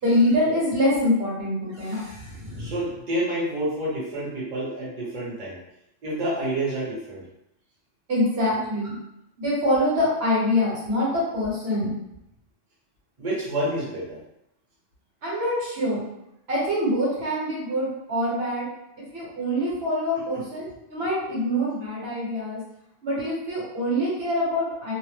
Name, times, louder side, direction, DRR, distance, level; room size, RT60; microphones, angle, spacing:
voice 1, 0.0-2.7 8.1-9.0 9.4-11.9 15.2-16.0 16.5-18.7 19.1-22.6 23.0-24.9, left 1 dB, 55° right, -7 dB, 1.4 m, -25 dB
voice 2, 2.6-5.6 6.0-7.2 13.2-14.2 20.3-20.4, right 1 dB, 40° right, -8 dB, 0.9 m, -28 dB
2.8 x 2.1 x 3.2 m, 0.83 s
omnidirectional pair, 1.3 m